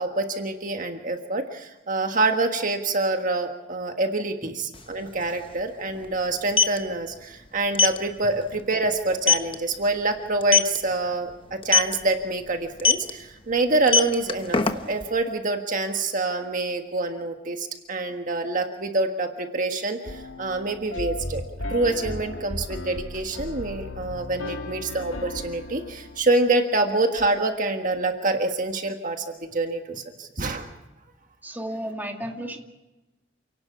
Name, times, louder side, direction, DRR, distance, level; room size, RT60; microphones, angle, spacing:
voice 1, 0.0-14.6 14.9-21.4 21.7-30.7, right 2 dB, 45° right, 4 dB, 1.5 m, -26 dB
sound 1, 4.7-4.8 5.1-5.3 6.3-6.8 7.7-8.0 8.4-8.6 8.9-9.0 9.3-9.5 10.4-10.8 11.6-11.9 12.8-13.1 13.7-15.0, left 5 dB, 30° left, 1.2 m, -19 dB
sound 2, 20.0-26.2, left 1 dB, 80° left, 2.4 m, -35 dB
voice 2, 31.4-32.6, right 1 dB, 10° right, 2 dB, 2.2 m, -33 dB
28.5 x 18.5 x 6.0 m, 1.1 s
head